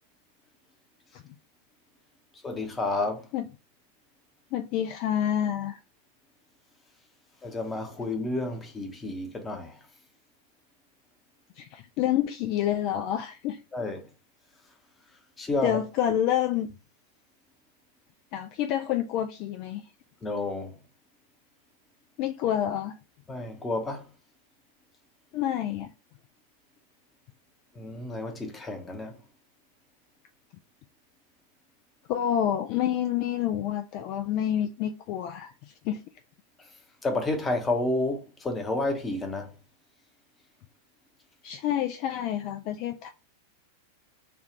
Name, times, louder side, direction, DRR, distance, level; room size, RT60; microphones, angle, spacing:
voice 1, 2.4-3.2 7.4-9.8 13.7-14.1 15.4-15.8 20.2-20.8 23.3-24.1 27.7-29.2 37.0-39.5, left 2 dB, 15° left, 0.9 m, -30 dB
voice 2, 4.5-5.8 11.6-13.6 15.6-16.7 18.3-19.9 22.2-23.0 25.3-25.9 32.1-36.0 41.4-43.1, left 10 dB, 45° left, 0.3 m, -28 dB
3.4 x 2.4 x 4.2 m
figure-of-eight pair, 90°, 0 cm